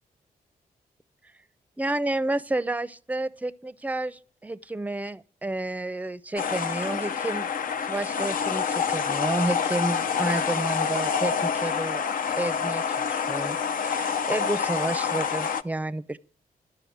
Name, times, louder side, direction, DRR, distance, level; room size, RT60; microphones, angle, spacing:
voice 1, 1.8-7.5 7.9-12.0 12.4-16.2, right 2 dB, 10° right, 0.5 m, -30 dB
sound 1, 6.4-15.6, left 6 dB, 65° left, 0.7 m, -27 dB
12.5 x 6.8 x 9.3 m
cardioid pair, 100°, 15 cm